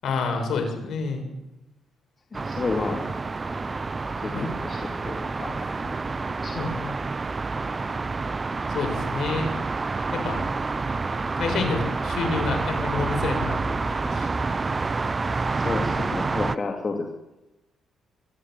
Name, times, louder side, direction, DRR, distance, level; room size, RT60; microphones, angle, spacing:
voice 1, 0.0-1.2 4.3-4.5 6.5-6.9 8.7-9.5 10.1-10.4 11.4-14.3, left 4 dB, 65° left, 4 dB, 7.1 m, -28 dB
voice 2, 2.3-3.1 3.5-3.6 4.1-4.3 4.6-5.5 5.8-5.9 6.4-6.6 15.5-17.1, left 3 dB, 35° left, 2 dB, 3.3 m, -31 dB
sound 1, 2.3-16.6, right 3 dB, 30° right, 0.9 m, -28 dB
23.5 x 14.0 x 9.5 m, 0.97 s
cardioid pair, 90°, 0 cm